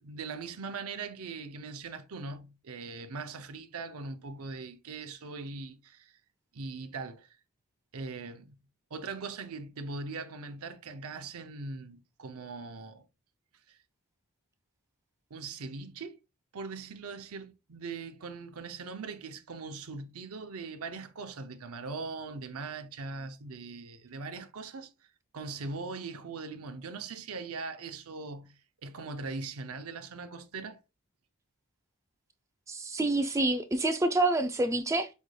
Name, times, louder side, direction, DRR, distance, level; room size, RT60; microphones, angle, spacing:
voice 1, 0.0-6.2 6.5-7.3 7.9-8.6 8.9-13.1 13.7-13.8 15.3-16.2 16.5-24.9 25.3-28.5 28.8-30.8, right 4 dB, 80° right, 0.6 m, -40 dB
voice 2, 32.7-35.1, right 2 dB, 15° right, 0.3 m, -27 dB
5.2 x 3.2 x 2.2 m
head